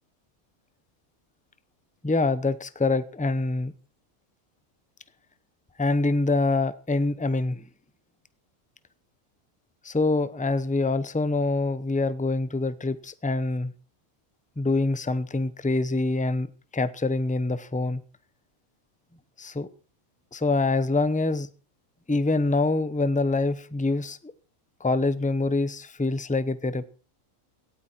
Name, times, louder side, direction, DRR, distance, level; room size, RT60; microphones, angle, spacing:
voice 1, 2.0-3.7 5.8-7.6 9.8-13.7 14.6-16.5 16.7-18.0 19.4-19.7 20.3-21.5 22.1-24.2 24.8-26.8, left 3 dB, 5° left, 0.7 m, -25 dB
18.0 x 13.0 x 4.5 m
omnidirectional pair, 1.5 m